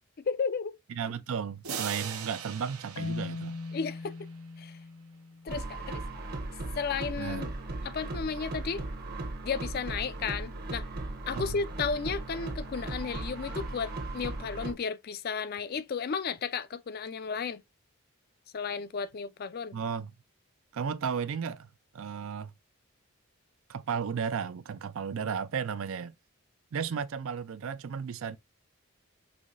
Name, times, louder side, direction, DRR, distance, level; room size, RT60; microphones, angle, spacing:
voice 1, 0.2-0.8 3.7-4.1 4.6-4.8 5.4-6.0 6.8-7.5 7.8-8.8 9.4-10.9 11.3-17.6 18.5-19.8, left 5 dB, 45° left, 0.4 m, -33 dB
voice 2, 0.9-3.6 7.1-7.5 11.3-11.6 19.7-20.1 20.7-22.5 23.7-26.1 26.7-28.4, right 6 dB, 65° right, 0.4 m, -34 dB
sound 1, 1.6-4.3, right 7 dB, 85° right, 0.8 m, -40 dB
Marimba xylophone, 3.0-5.9, left 3 dB, 85° left, 0.6 m, -39 dB
sound 2, 5.5-14.7, right 2 dB, 45° right, 0.9 m, -37 dB
5.6 x 3.0 x 2.5 m
head